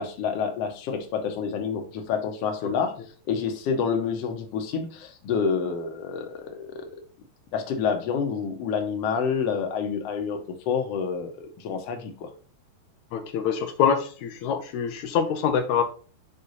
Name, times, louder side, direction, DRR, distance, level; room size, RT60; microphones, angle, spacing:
voice 1, 0.0-2.9 3.3-7.0 7.5-10.4 10.7-12.3, left 6 dB, 65° left, 5 dB, 2.0 m, -28 dB
voice 2, 13.1-15.8, left 7 dB, 85° left, 6 dB, 2.1 m, -25 dB
6.5 x 5.6 x 4.1 m, 0.39 s
omnidirectional pair, 3.3 m